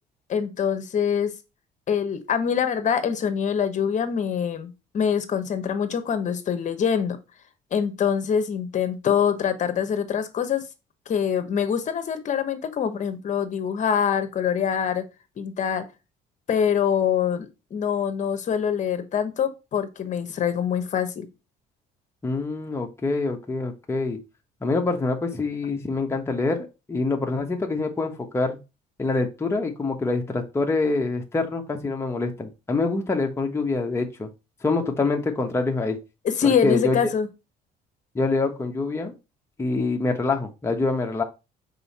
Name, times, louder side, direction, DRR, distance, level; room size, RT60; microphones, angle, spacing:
voice 1, 0.3-1.3 1.9-7.2 7.7-10.6 11.1-15.0 15.4-15.9 16.5-21.3 36.2-37.3, left 7 dB, 45° left, 1.1 m, -24 dB
voice 2, 22.2-24.2 24.6-28.6 29.0-34.3 34.6-36.0 36.6-37.0 38.1-39.1 39.6-41.2, left 3 dB, 15° left, 1.0 m, -25 dB
5.5 x 4.2 x 4.1 m
cardioid pair, 110°, 17 cm